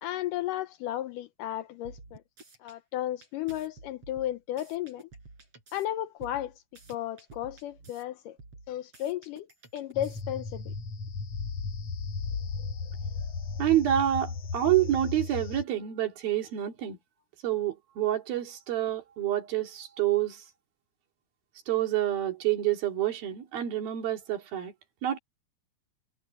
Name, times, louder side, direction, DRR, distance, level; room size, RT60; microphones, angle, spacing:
voice 1, 0.0-2.2 2.6-5.1 5.7-6.5 6.9-8.4 8.7-9.5 9.7-10.7, left 13 dB, 80° left, 2.0 m, -34 dB
sound 1, 1.8-2.8 3.2-5.9 6.2-8.0 8.4-10.5, right 3 dB, 40° right, 7.7 m, -51 dB
sound 2, 9.9-15.6, left 4 dB, 55° left, 2.1 m, -35 dB
voice 2, 13.6-17.0 17.4-20.4 21.7-24.7 25.0-25.2, right 12 dB, 75° right, 4.4 m, -28 dB
omnidirectional pair, 4.2 m